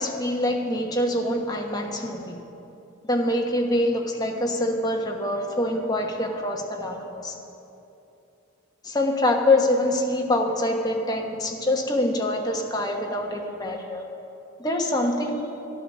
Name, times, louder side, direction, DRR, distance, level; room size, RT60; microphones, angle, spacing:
voice 1, 0.0-2.4 3.1-7.4 8.8-14.1 14.6-15.5, left 1 dB, 20° left, 1 dB, 1.2 m, -25 dB
12.0 x 12.0 x 7.3 m, 2.9 s
head